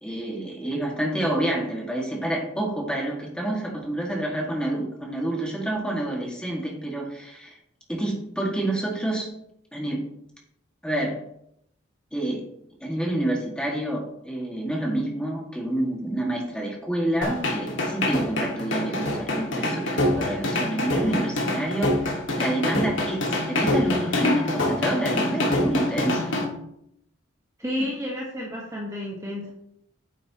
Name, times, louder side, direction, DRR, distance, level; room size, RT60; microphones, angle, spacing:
voice 1, 0.0-7.5 7.9-9.3 9.7-10.0 10.8-11.2 12.1-12.4 12.8-21.9 22.4-26.3, right 1 dB, 5° left, -1 dB, 2.0 m, -28 dB
sound 1, 17.2-26.4, left 1 dB, 65° left, 2.1 m, -25 dB
voice 2, 27.6-29.5, left 1 dB, 15° right, -3 dB, 1.4 m, -31 dB
9.5 x 7.8 x 3.0 m, 0.75 s
head